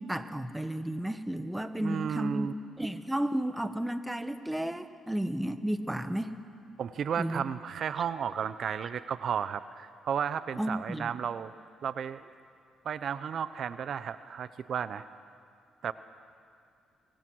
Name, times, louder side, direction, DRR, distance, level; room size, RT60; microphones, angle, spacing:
voice 1, 0.0-2.5 2.8-6.3 7.2-7.4 10.6-11.1, right 1 dB, 5° right, 10 dB, 1.2 m, -32 dB
voice 2, 1.6-2.5 6.8-11.5 11.8-12.3 12.8-15.0 15.8-15.9, right 8 dB, 60° right, 13 dB, 0.6 m, -33 dB
25.0 x 22.5 x 6.3 m, 2.4 s
cardioid pair, 90°, 0 cm